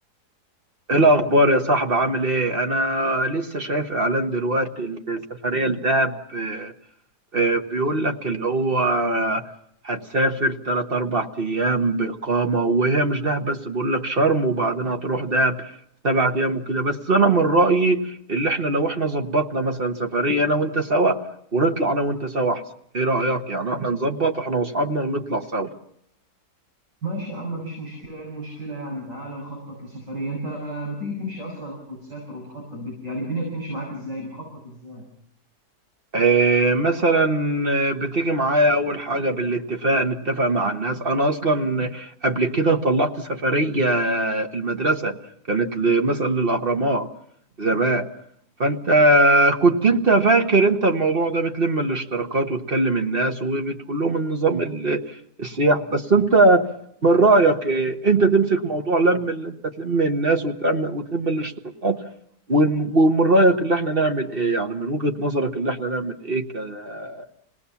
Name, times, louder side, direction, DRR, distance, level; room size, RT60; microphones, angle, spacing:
voice 1, 0.9-6.7 7.3-9.4 9.8-15.8 16.0-21.2 21.5-22.6 22.9-25.7 36.1-45.2 45.5-47.1 47.6-48.1 48.6-56.7 57.0-61.5 61.8-62.0 62.5-67.2, right 2 dB, 35° right, 5 dB, 1.5 m, -21 dB
voice 2, 27.0-35.0, right 1 dB, 85° right, -2 dB, 7.5 m, -33 dB
27.5 x 19.0 x 7.1 m, 0.74 s
omnidirectional pair, 1.8 m